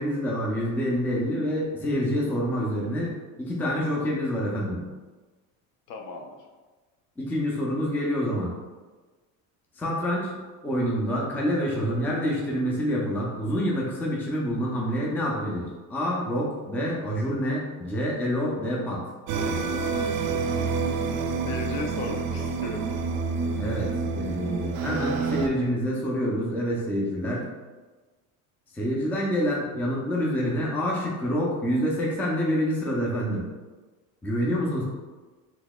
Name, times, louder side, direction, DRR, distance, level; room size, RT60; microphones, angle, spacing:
voice 1, 0.0-4.9 7.2-8.5 9.8-10.4 10.6-19.0 23.6-27.4 28.7-33.4 34.2-34.8, equal, 5° left, -3 dB, 0.4 m, -27 dB
voice 2, 5.9-6.3 21.4-23.0, left 3 dB, 55° left, 2 dB, 0.5 m, -35 dB
sound 1, 19.3-25.5, right 4 dB, 65° right, 0.5 m, -28 dB
4.0 x 2.8 x 2.2 m, 1.3 s
cardioid pair, 130°, 40 cm